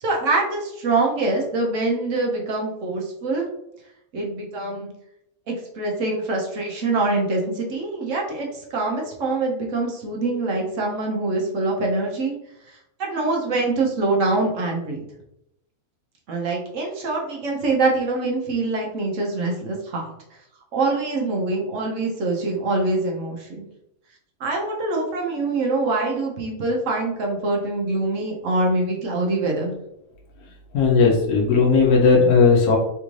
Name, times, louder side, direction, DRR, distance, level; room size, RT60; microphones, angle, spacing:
voice 1, 0.0-3.5 4.1-4.9 5.5-12.3 12.7-15.0 16.3-20.1 20.7-23.6 24.4-29.8, right 2 dB, 65° right, -1 dB, 1.0 m, -24 dB
voice 2, 30.7-32.8, left 4 dB, 85° left, -2 dB, 1.1 m, -16 dB
3.4 x 2.5 x 3.0 m, 0.81 s
omnidirectional pair, 1.5 m